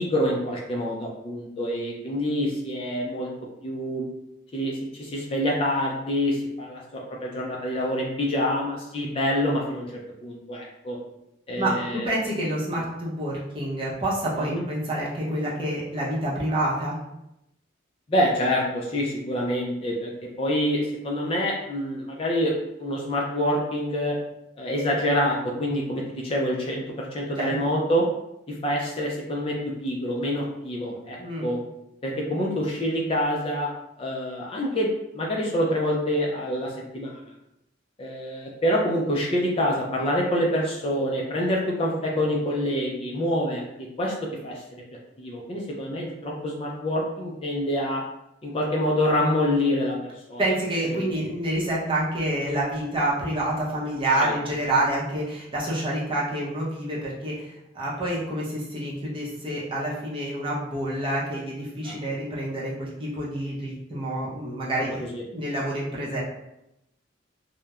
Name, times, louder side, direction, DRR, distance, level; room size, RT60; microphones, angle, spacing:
voice 1, 0.0-3.3 3.6-4.1 4.5-9.9 10.2-11.0 11.5-12.1 14.4-14.6 18.1-20.1 20.4-22.5 22.8-24.2 24.6-28.1 28.5-31.6 32.0-33.7 34.0-37.2 38.0-44.1 44.4-44.8 45.2-48.0 48.4-50.4 50.9-51.1 54.2-54.3 61.8-62.0 65.0-65.2, equal, 30° left, -2 dB, 0.3 m, -26 dB
voice 2, 11.6-17.0 27.4-27.6 31.2-31.5 50.4-65.0 65.3-66.2, right 1 dB, 25° right, -6 dB, 0.6 m, -28 dB
2.9 x 2.0 x 2.3 m, 0.87 s
head